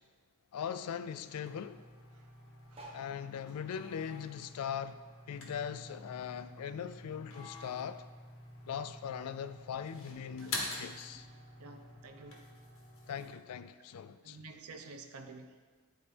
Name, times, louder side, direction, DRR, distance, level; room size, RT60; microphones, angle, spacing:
voice 1, 0.5-1.8 2.9-5.0 5.3-8.0 8.6-11.3 13.1-14.4, left 8 dB, 80° left, 0.4 m, -40 dB
sound 1, 1.4-13.4, left 2 dB, 65° left, 1.3 m, -47 dB
sound 2, 2.7-5.5 5.8-7.3 7.8-7.9 8.1-8.2 8.4-8.8 9.5-9.6, right 1 dB, 25° right, 1.3 m, -56 dB
voice 2, 11.6-12.5 14.2-15.5, right 3 dB, 75° right, 0.6 m, -50 dB
10.5 x 4.1 x 3.4 m
head